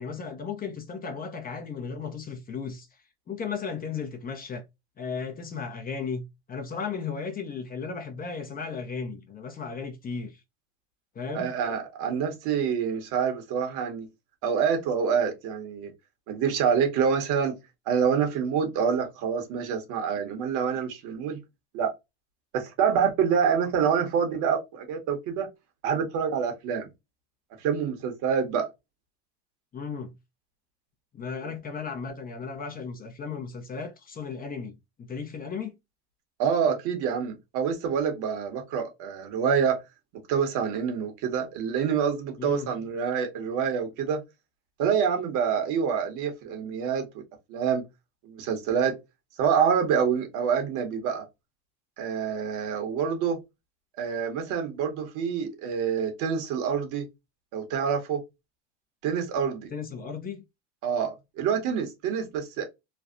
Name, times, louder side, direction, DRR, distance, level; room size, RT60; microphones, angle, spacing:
voice 1, 0.0-2.9 3.3-4.6 5.0-10.4 11.1-11.5 29.7-30.1 31.1-35.7 42.4-42.7 59.7-60.4, left 5 dB, 25° left, 0.8 m, -35 dB
voice 2, 11.3-14.1 14.4-15.9 16.3-17.6 17.9-21.4 21.7-21.9 22.5-25.5 25.8-26.9 27.6-28.7 36.4-39.8 40.3-44.2 44.8-47.2 47.5-47.8 48.2-49.0 49.4-51.3 52.0-53.4 54.0-57.1 57.5-58.2 59.0-59.7 60.8-62.6, right 7 dB, 65° right, 1.4 m, -26 dB
3.2 x 2.3 x 2.5 m
supercardioid pair, 105°, 33 cm